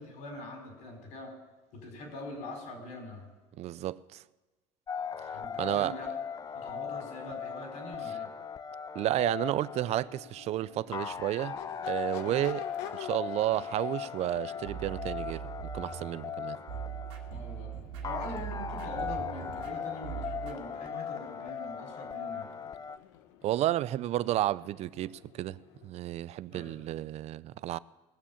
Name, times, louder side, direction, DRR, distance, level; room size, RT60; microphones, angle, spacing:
voice 1, 0.0-1.3 1.7-3.3 5.3-6.1 6.5-8.3 12.2-12.5 17.3-17.7 18.0-22.5 26.5-26.8, left 1 dB, 70° left, 4.4 m, -43 dB
voice 2, 3.6-4.2 5.6-5.9 8.9-11.6 11.9-12.7 12.9-15.4 15.7-16.6 23.4-27.8, right 14 dB, 55° right, 0.4 m, -31 dB
sound 1, 4.9-23.0, left 7 dB, 25° left, 0.5 m, -39 dB
Crowd / Race car auto racing / Accelerating revving vroom, 9.0-26.0, left 10 dB, 90° left, 1.0 m, -51 dB
sound 2, 14.6-20.5, right 10 dB, 85° right, 2.1 m, -41 dB
19.5 x 7.3 x 7.1 m
supercardioid pair, 100°, 13 cm